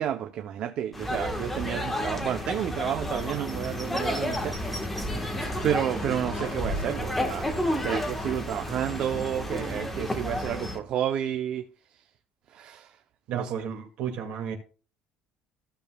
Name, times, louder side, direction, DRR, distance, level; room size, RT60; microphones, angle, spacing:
voice 1, 0.0-4.6 5.6-7.5 7.8-11.7 12.5-13.0 13.3-13.5, right 10 dB, 40° right, 0.6 m, -30 dB
sound 1, 0.9-10.8, left 1 dB, 5° left, 1.3 m, -31 dB
sound 2, 5.1-8.6, left 1 dB, 40° left, 4.5 m, -42 dB
voice 2, 13.3-14.6, right 8 dB, 60° right, 2.1 m, -32 dB
15.0 x 6.9 x 2.3 m
cardioid pair, 175°, 2 cm